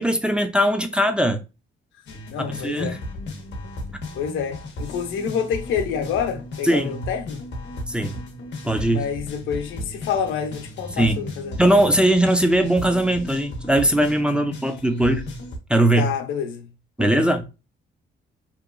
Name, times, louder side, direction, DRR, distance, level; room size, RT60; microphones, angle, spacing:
voice 1, 0.0-1.4 2.4-3.0 6.6-7.0 7.9-8.2 8.6-9.0 11.0-11.2 11.6-15.2 15.7-16.1 17.0-17.5, right 1 dB, 5° right, 0.4 m, -20 dB
sound 1, 2.1-15.6, left 1 dB, 65° left, 0.9 m, -35 dB
voice 2, 2.3-3.0 4.1-7.4 8.9-11.7 16.0-16.7 17.0-17.4, left 7 dB, 85° left, 0.7 m, -28 dB
2.9 x 2.3 x 2.2 m
cardioid pair, 90°, 20 cm